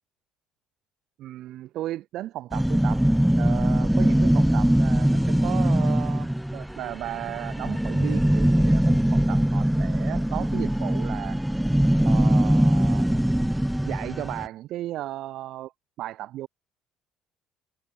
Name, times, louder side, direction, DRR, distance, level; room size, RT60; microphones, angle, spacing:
voice 1, 1.2-3.0 3.4-11.4 12.0-13.1 13.8-15.7 16.0-16.5, right 14 dB, 65° right, 0.8 m, -35 dB
sound 1, 2.5-14.5, right 1 dB, 5° right, 0.3 m, -22 dB
supercardioid pair, 90°, 0 cm